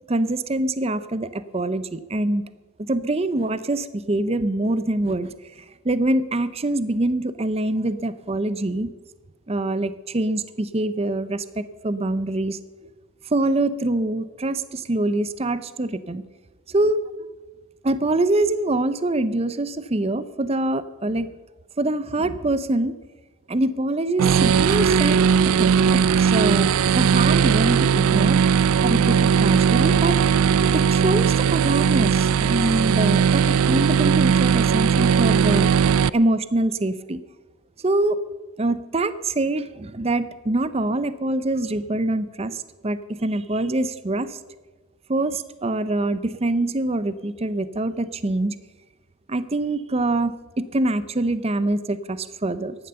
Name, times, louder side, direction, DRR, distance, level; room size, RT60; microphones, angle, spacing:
voice 1, 0.1-2.4 2.8-8.9 9.5-12.6 13.2-16.2 16.7-17.0 17.8-21.3 21.8-22.9 23.5-28.4 28.8-30.2 30.7-37.2 37.8-38.2 38.6-44.4 45.1-48.6 49.3-52.9, right 2 dB, 30° right, 14 dB, 0.6 m, -24 dB
sound 1, 24.2-36.1, right 7 dB, 75° right, 0.4 m, -18 dB
15.5 x 11.0 x 6.8 m, 1.3 s
head